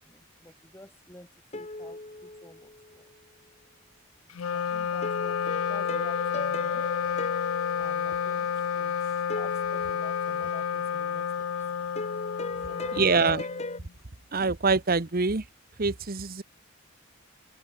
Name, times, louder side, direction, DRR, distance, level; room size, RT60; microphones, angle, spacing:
voice 1, 0.0-3.1 4.5-7.1 7.8-13.1, left 1 dB, 10° left, 5.2 m, -51 dB
sound 1, 1.5-3.0 5.0-8.7 9.3-10.8 12.0-13.8, left 2 dB, 30° left, 1.8 m, -38 dB
Wind instrument woodwind instrument, 4.3-13.9, left 7 dB, 85° left, 0.5 m, -30 dB
voice 2, 12.9-13.5 14.3-15.4 15.8-16.4, right 4 dB, 45° right, 1.1 m, -25 dB
head